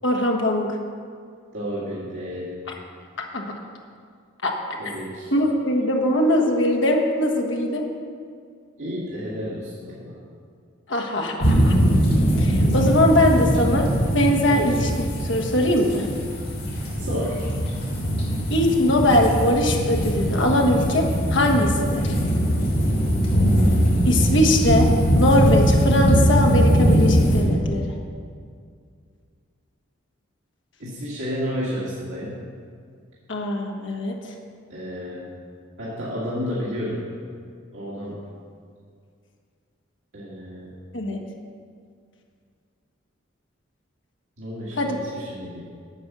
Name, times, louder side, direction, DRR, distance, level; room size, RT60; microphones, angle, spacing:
voice 1, 0.0-0.8 3.3-3.5 4.4-4.5 5.3-7.8 10.9-11.8 12.4-13.9 14.1-16.1 18.5-21.0 21.3-22.1 24.1-24.9 25.1-27.9 33.3-34.1 40.9-41.2 44.8-45.0, left 1 dB, 75° left, 1 dB, 1.4 m, -21 dB
voice 2, 1.5-2.5 4.8-5.3 8.8-10.1 14.5-14.6 17.0-17.4 30.8-32.5 34.7-35.3 35.8-37.1 37.7-38.2 40.1-40.7 44.4-45.6, equal, 85° right, -8 dB, 2.1 m, -31 dB
sound 1, 11.4-27.4, equal, 55° left, 3.2 m, -21 dB
9.6 x 8.1 x 6.2 m, 2.2 s
head